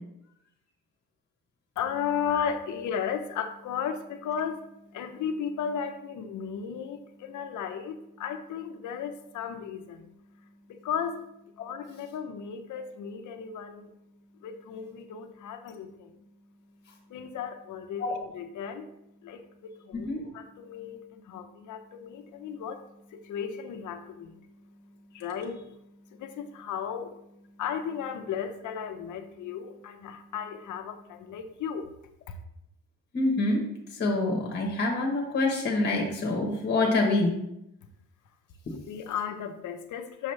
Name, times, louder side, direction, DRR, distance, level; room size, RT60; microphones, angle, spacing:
voice 1, 1.8-18.0 18.3-20.1 20.3-31.9 32.3-32.4 38.9-40.3, left 7 dB, 60° left, 8 dB, 0.7 m, -35 dB
voice 2, 33.1-33.6 33.9-37.4, left 2 dB, 30° left, 1 dB, 1.1 m, -26 dB
6.4 x 6.0 x 3.2 m, 0.84 s
cardioid pair, 170°, 34 cm